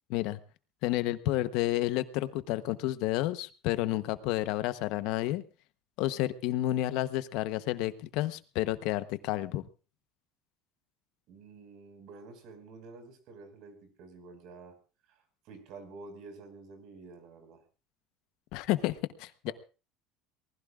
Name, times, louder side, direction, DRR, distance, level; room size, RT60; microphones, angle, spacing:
voice 1, 0.8-5.4 6.0-9.7 18.5-19.5, left 15 dB, 65° left, 12 dB, 0.9 m, -30 dB
voice 2, 11.3-14.8 15.1-17.6 19.5-19.6, right 3 dB, 55° right, 6 dB, 5.2 m, -49 dB
24.0 x 19.5 x 2.5 m, 0.36 s
cardioid pair, 150°, 0 cm